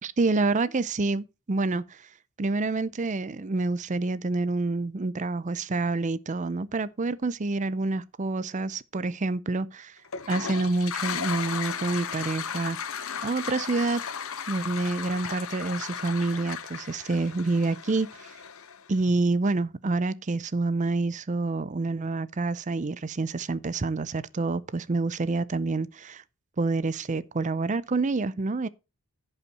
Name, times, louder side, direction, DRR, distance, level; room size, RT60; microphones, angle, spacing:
voice 1, 0.0-2.1 2.4-10.0 10.3-14.0 14.5-18.3 18.9-26.2 26.6-28.7, right 3 dB, 35° right, 0.5 m, -28 dB
Toilet flush, 10.0-18.9, left 7 dB, 70° left, 0.9 m, -35 dB
15.0 x 5.5 x 4.1 m
head